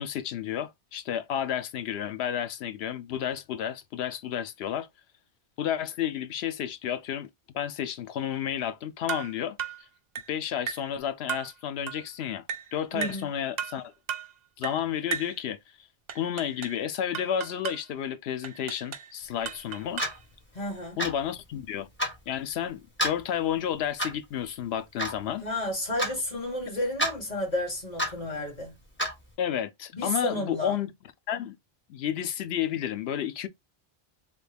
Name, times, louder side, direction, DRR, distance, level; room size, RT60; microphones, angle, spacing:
voice 1, 0.0-4.9 5.6-7.3 7.5-9.6 10.3-12.4 12.7-13.9 14.6-15.6 16.1-20.0 21.0-21.9 22.3-25.4 29.4-30.9 31.3-31.5 31.9-33.5, left 9 dB, 85° left, 0.8 m, -31 dB
sound 1, 9.1-9.3 9.6-9.8 10.2-10.3 10.7-10.9 11.3-11.5 11.9-12.0 12.5-12.7 13.0-13.3 13.6-13.8 14.1-14.3 14.6-14.8 15.1-15.4 16.1-16.8 17.1-17.8 18.4-19.1 19.5-20.2, right 8 dB, 50° right, 0.6 m, -35 dB
voice 2, 12.9-13.3 20.5-21.0 25.4-28.8 29.9-30.7, left 1 dB, 40° left, 1.7 m, -32 dB
Clock, 20.0-20.2 21.0-21.2 22.0-22.2 23.0-23.2 24.0-24.2 25.0-25.2 26.0-26.2 27.0-27.1 28.0-28.2 29.0-29.1, equal, 10° left, 1.2 m, -28 dB
3.4 x 2.2 x 3.3 m
omnidirectional pair, 1.0 m